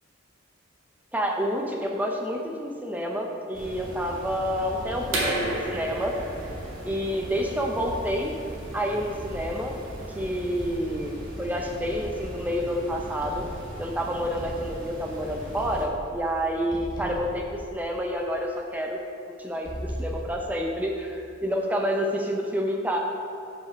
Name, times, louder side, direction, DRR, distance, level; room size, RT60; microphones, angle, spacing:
voice 1, 1.1-6.1 6.8-8.3 8.7-9.7 10.2-13.4 13.8-19.0 19.3-23.0, equal, 10° right, 1 dB, 0.5 m, -29 dB
sound 1, 3.5-15.9, equal, 45° right, 1.5 m, -40 dB
sound 2, 4.9-5.5 6.4-7.0 7.8-8.6 9.2-10.0 10.6-11.2 11.9-12.7 13.2-13.9 14.4-15.2 15.5-16.4 16.7-18.2 19.6-20.6, equal, 20° left, 1.0 m, -39 dB
sound 3, 5.1-10.7, right 1 dB, 85° right, 1.7 m, -34 dB
5.7 x 5.3 x 6.1 m, 2.7 s
head